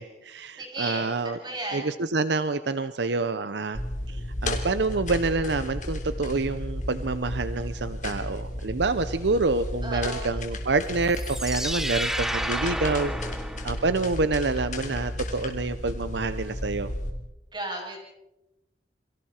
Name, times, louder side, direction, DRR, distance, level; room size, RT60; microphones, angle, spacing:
voice 1, 0.0-1.4 1.7-3.8 4.1-13.1 13.6-16.9, right 3 dB, 70° right, 12 dB, 0.8 m, -27 dB
voice 2, 0.6-1.9 9.8-10.3 17.5-18.0, right 1 dB, 25° right, 0 dB, 7.8 m, -34 dB
sound 1, 3.7-17.1, left 1 dB, 45° left, 3.3 m, -33 dB
sound 2, 11.0-14.2, equal, ahead, 1.2 m, -31 dB
29.5 x 24.0 x 4.4 m, 0.96 s
head